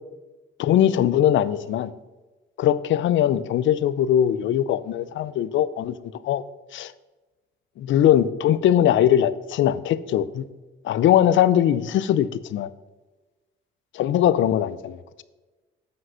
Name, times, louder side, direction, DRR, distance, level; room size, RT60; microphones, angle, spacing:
voice 1, 0.6-1.9 2.6-6.0 6.2-6.4 6.7-6.9 7.8-10.5 10.8-12.7 13.9-15.2, left 11 dB, 75° left, 16 dB, 0.5 m, -21 dB
8.0 x 5.3 x 5.6 m, 1.2 s
cardioid pair, 90°, 20 cm